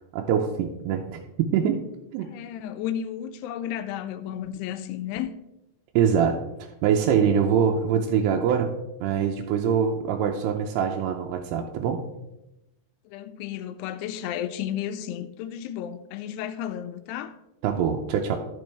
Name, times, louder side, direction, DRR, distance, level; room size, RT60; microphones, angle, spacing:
voice 1, 0.1-1.8 2.1-2.3 6.0-6.4 6.8-8.7 9.0-12.0 17.6-18.4, right 7 dB, 80° right, 2.6 m, -24 dB
voice 2, 2.3-5.4 13.1-17.4, left 10 dB, 85° left, 2.5 m, -33 dB
12.5 x 6.1 x 3.3 m
omnidirectional pair, 4.9 m